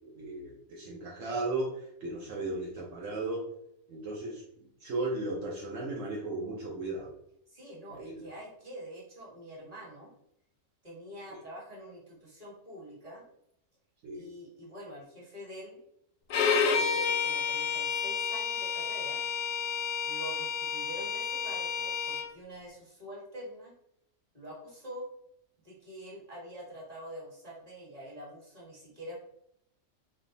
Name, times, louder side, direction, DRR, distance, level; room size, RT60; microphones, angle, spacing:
voice 1, 0.0-3.5 3.9-7.1 7.9-8.2 11.3-11.4 14.0-14.3, right 2 dB, 75° right, -3 dB, 1.1 m, -36 dB
voice 2, 7.5-10.1 10.8-13.2 14.1-15.8 16.7-19.2 20.1-23.7 24.3-25.1 25.6-29.1, equal, 30° right, -6 dB, 1.7 m, -46 dB
Bowed string instrument, 16.3-22.3, left 6 dB, 65° left, 0.7 m, -30 dB
3.5 x 2.3 x 3.8 m, 0.76 s
omnidirectional pair, 1.4 m